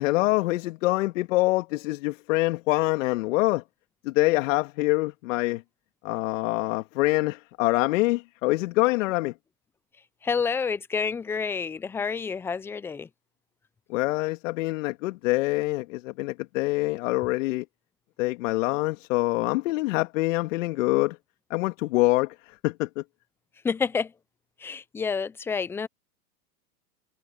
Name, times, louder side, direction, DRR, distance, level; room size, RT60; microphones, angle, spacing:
voice 1, 0.0-3.6 4.0-5.6 6.0-9.3 13.9-17.6 18.2-21.2 21.5-23.0, left 21 dB, 55° left, 2.2 m, -25 dB
voice 2, 10.2-13.1 23.6-24.1 24.6-25.9, left 5 dB, 5° left, 0.4 m, -29 dB
hypercardioid pair, 120°, 46 cm